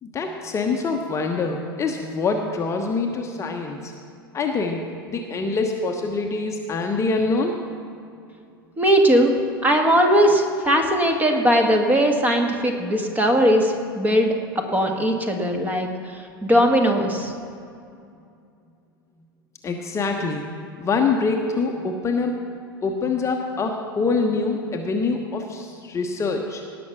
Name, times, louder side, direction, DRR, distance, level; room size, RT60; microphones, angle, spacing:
voice 1, 0.0-3.9 4.3-7.6 19.6-20.5 20.8-22.4 22.8-26.6, left 4 dB, 25° left, 2 dB, 1.0 m, -25 dB
voice 2, 8.8-9.3 9.6-14.3 14.7-17.3, equal, 15° right, 3 dB, 1.7 m, -19 dB
18.0 x 6.0 x 6.2 m, 2.4 s
figure-of-eight pair, 85°, 12 cm